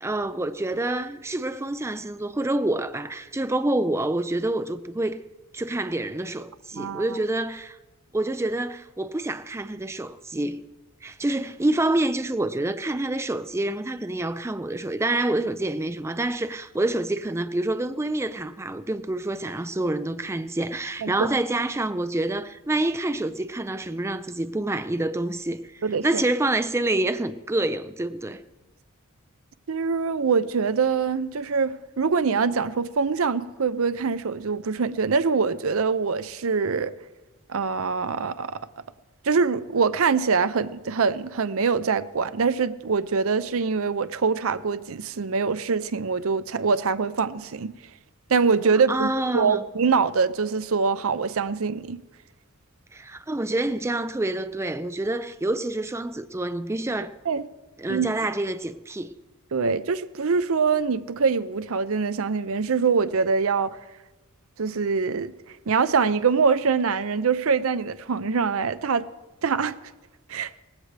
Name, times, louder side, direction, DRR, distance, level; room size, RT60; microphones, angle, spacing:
voice 1, 0.0-5.2 5.5-7.8 8.1-10.6 11.0-28.4 48.9-49.6 52.9-57.1 57.8-59.1, right 2 dB, 10° right, 0.4 m, -27 dB
voice 2, 25.8-26.2 29.7-36.9 37.5-38.6 39.2-47.7 48.3-52.0 57.3-57.4 57.9-58.1 59.5-63.8 64.6-65.3 65.7-69.1 69.4-69.8 70.3-70.5, right 5 dB, 65° right, 0.6 m, -24 dB
18.5 x 15.5 x 3.3 m
head